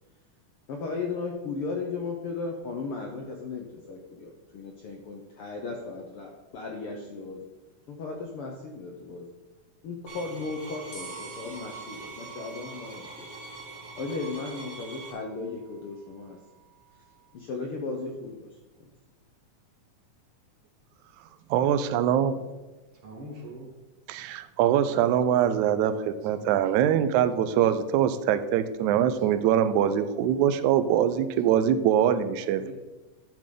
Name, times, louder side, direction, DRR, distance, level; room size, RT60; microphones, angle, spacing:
voice 1, 0.7-7.5 7.9-9.3 9.8-13.3 14.0-16.4 17.3-18.9, left 4 dB, 80° left, 2 dB, 1.3 m, -36 dB
sound 1, 10.1-15.1, right 4 dB, 35° right, 1.7 m, -43 dB
sound 2, 10.9-17.3, right 3 dB, 30° left, 2.2 m, -53 dB
voice 2, 21.5-22.4 24.1-32.7, right 9 dB, 80° right, 11 dB, 1.9 m, -23 dB
voice 3, 23.0-23.7 24.6-27.0 29.3-29.4 30.1-30.4 30.8-30.9 32.6-32.7, right 2 dB, 55° right, 0 dB, 2.2 m, -46 dB
11.5 x 7.4 x 3.8 m, 1.2 s
omnidirectional pair, 3.7 m